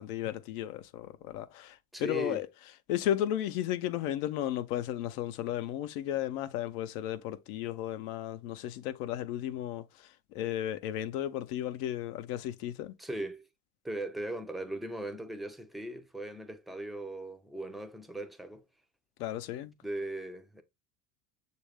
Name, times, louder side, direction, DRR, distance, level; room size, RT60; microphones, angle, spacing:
voice 1, 0.0-2.5 2.9-12.9 19.2-19.7, left 12 dB, 80° left, 0.6 m, -34 dB
voice 2, 1.9-2.4 13.0-13.5 13.8-18.6 19.8-20.6, right 1 dB, ahead, 0.3 m, -38 dB
6.3 x 2.5 x 3.3 m
supercardioid pair, 100°, 45 cm